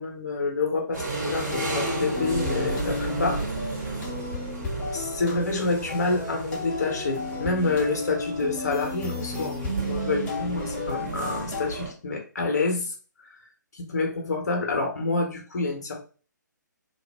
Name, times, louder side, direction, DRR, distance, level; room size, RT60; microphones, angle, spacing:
voice 1, 0.0-3.5 4.9-12.9 13.3-13.4 13.9-16.0, left 3 dB, 55° left, 3 dB, 0.8 m, -28 dB
sound 1, 0.9-11.9, right 3 dB, 45° right, 1.5 m, -34 dB
sound 2, 1.5-11.7, left 3 dB, 15° left, 0.8 m, -34 dB
2.7 x 2.0 x 3.4 m, 0.39 s
figure-of-eight pair, 135°, 10 cm